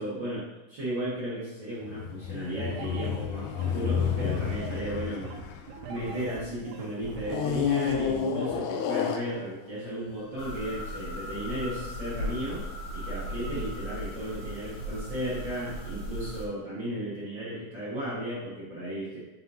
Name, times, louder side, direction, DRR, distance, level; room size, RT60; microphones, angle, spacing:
voice 1, 0.0-5.3 5.9-12.6 12.9-19.2, right 1 dB, 55° right, -8 dB, 1.3 m, -35 dB
sound 1, 1.8-6.5 7.2-9.8 10.5-10.6, left 8 dB, 80° left, 1.8 m, -31 dB
sound 2, 2.6-8.6, right 5 dB, 75° right, 1.9 m, -41 dB
sound 3, 10.4-16.4, equal, 65° left, 3.0 m, -37 dB
8.1 x 5.5 x 2.7 m, 1.1 s
omnidirectional pair, 4.1 m